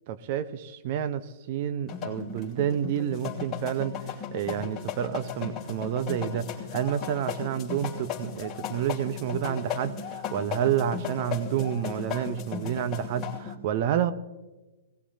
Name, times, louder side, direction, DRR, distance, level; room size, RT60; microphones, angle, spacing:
voice 1, 0.1-14.1, right 10 dB, 50° right, 12 dB, 0.9 m, -29 dB
sound 1, 1.9-13.6, left 7 dB, 25° left, 2.6 m, -36 dB
20.0 x 18.0 x 2.8 m, 1.1 s
hypercardioid pair, 120°, 0 cm